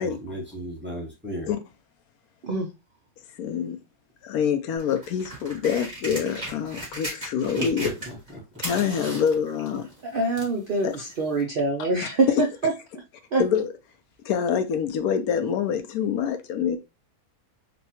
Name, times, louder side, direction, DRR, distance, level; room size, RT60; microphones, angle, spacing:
voice 1, 0.0-1.5 7.6-8.4, right 1 dB, 10° right, 0.7 m, -35 dB
voice 2, 3.4-3.8 4.2-7.9 8.6-9.9 10.8-10.9 12.3-12.4 13.4-13.7 14.2-16.8, left 7 dB, 85° left, 1.1 m, -25 dB
sound 1, 4.8-8.3 8.5-10.6 11.4-11.5, right 1 dB, 30° right, 1.6 m, -36 dB
voice 3, 10.0-13.0 13.3-13.4, right 3 dB, 65° right, 0.5 m, -25 dB
4.0 x 2.3 x 2.8 m
omnidirectional pair, 1.5 m